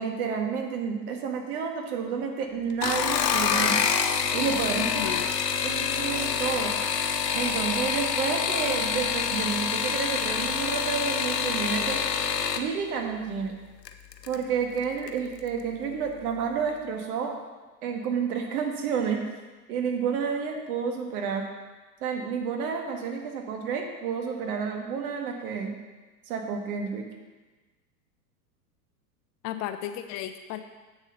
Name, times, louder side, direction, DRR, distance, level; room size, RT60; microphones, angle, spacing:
voice 1, 0.0-3.8 4.3-5.1 5.6-6.7 7.3-12.0 12.6-13.6 14.3-17.3 17.8-19.2 19.7-21.4 22.0-25.8 26.3-27.1, right 6 dB, 65° right, 2 dB, 1.9 m, -30 dB
sound 1, 2.7-12.7 13.9-14.4 14.8-15.2 15.5-15.6, left 7 dB, 90° left, 0.9 m, -27 dB
voice 2, 4.8-5.3 29.4-30.6, left 12 dB, 35° left, 9 dB, 0.6 m, -34 dB
8.1 x 7.1 x 5.4 m, 1.2 s
hypercardioid pair, 105°, 48 cm